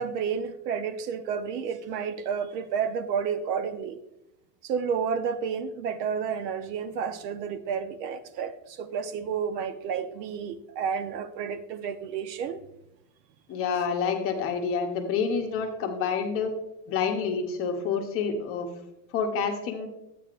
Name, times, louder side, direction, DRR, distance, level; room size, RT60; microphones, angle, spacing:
voice 1, 0.0-4.0 4.6-12.6, right 6 dB, 80° right, 0.9 m, -31 dB
voice 2, 13.5-16.5 16.9-18.7 19.1-19.9, left 6 dB, 30° left, 0.8 m, -28 dB
10.5 x 8.5 x 2.5 m
supercardioid pair, 165°, 48 cm